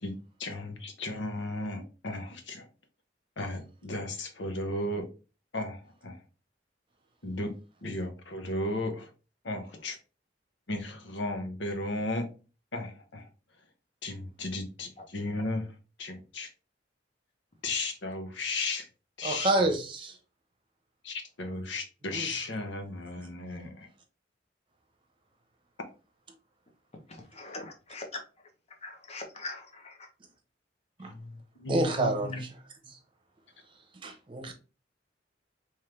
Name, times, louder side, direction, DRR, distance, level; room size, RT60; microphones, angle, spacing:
voice 1, 0.4-2.6 3.4-5.1 5.5-6.2 7.2-7.5 7.8-9.1 9.4-10.0 10.7-12.3 12.7-13.2 14.0-15.7 16.0-16.5 17.6-18.9 19.2-19.7 21.0-23.9 31.1-31.3 31.6-32.4, left 2 dB, 80° left, 0.9 m, -35 dB
voice 2, 19.2-20.2 22.1-22.3 23.4-23.7 31.0-31.1 31.7-32.3 34.0-34.5, right 2 dB, 30° right, 0.8 m, -28 dB
voice 3, 27.1-28.2 28.8-30.1, left 2 dB, 35° left, 0.9 m, -42 dB
3.6 x 3.2 x 3.2 m
head